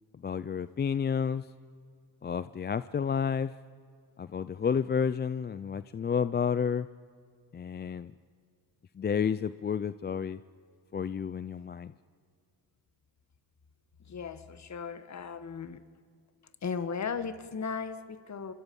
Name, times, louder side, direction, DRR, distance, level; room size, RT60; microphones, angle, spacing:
voice 1, 0.2-1.4 2.2-3.5 4.2-6.9 7.5-8.1 9.0-10.4 10.9-11.9, left 7 dB, 25° left, 15 dB, 0.5 m, -30 dB
voice 2, 14.0-15.8 16.6-18.5, left 6 dB, 40° left, 11 dB, 1.6 m, -36 dB
27.0 x 25.0 x 5.4 m, 2.2 s
cardioid pair, 85°, 43 cm